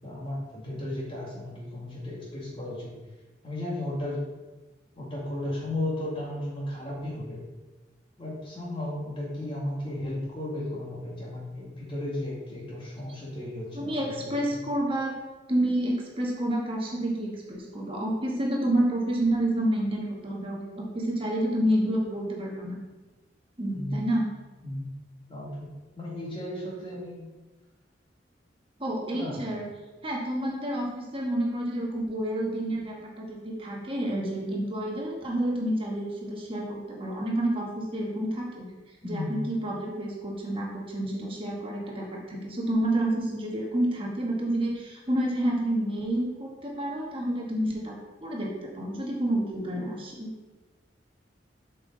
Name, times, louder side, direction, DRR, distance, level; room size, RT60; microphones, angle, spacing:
voice 1, 0.0-2.9 3.4-4.3 5.0-7.4 8.2-14.6 23.7-24.1 24.6-24.9 25.3-27.3 29.1-29.5 39.0-39.4, left 1 dB, 30° left, -4 dB, 1.8 m, -35 dB
voice 2, 13.7-15.2 15.5-22.8 23.6-24.3 28.8-29.7 30.0-38.7 39.0-50.3, right 1 dB, 30° right, -2 dB, 1.2 m, -29 dB
7.5 x 5.4 x 3.8 m, 1.2 s
head